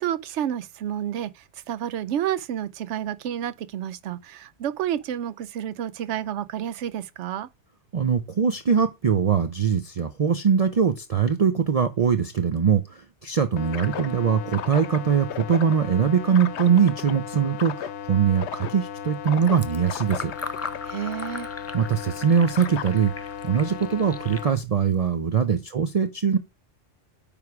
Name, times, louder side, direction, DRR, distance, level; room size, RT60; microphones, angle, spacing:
voice 1, 0.0-7.5 20.8-21.5, right 10 dB, 90° right, 0.9 m, -30 dB
voice 2, 7.9-20.3 21.7-26.4, right 7 dB, 45° right, 0.5 m, -22 dB
sound 1, 13.6-24.5, left 9 dB, 80° left, 0.9 m, -35 dB
Fill (with liquid), 19.3-25.5, left 3 dB, 25° left, 0.3 m, -40 dB
9.4 x 3.6 x 4.7 m
omnidirectional pair, 1.1 m